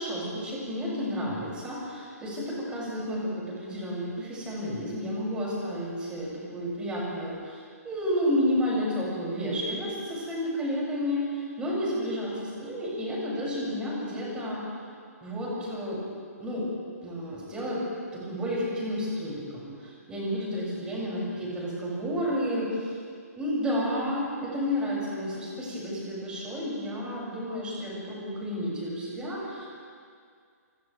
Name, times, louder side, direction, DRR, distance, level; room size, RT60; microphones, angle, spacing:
voice 1, 0.0-12.3 12.6-14.6 15.2-16.0 16.4-16.7 17.0-17.8 18.1-23.0 23.4-29.7, equal, 10° right, -5 dB, 7.9 m, -31 dB
29.0 x 28.0 x 3.7 m, 2.2 s
figure-of-eight pair, 130°, 9 cm